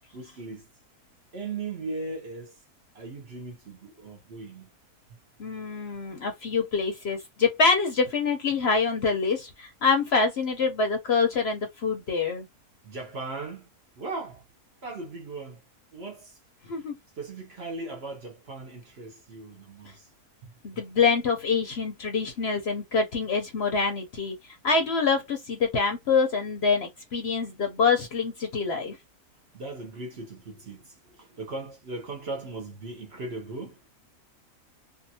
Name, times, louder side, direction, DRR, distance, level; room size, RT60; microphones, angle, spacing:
voice 1, 0.1-0.7 1.3-2.6 2.9-4.7 12.8-13.7 14.0-14.4 14.8-15.6 15.9-16.4 17.2-20.1 20.4-20.5 29.5-33.8, right 3 dB, 50° right, 1.0 m, -38 dB
voice 2, 5.4-12.5 16.7-17.0 20.6-29.0, left 5 dB, 55° left, 0.8 m, -25 dB
2.6 x 2.5 x 2.7 m
omnidirectional pair, 1.6 m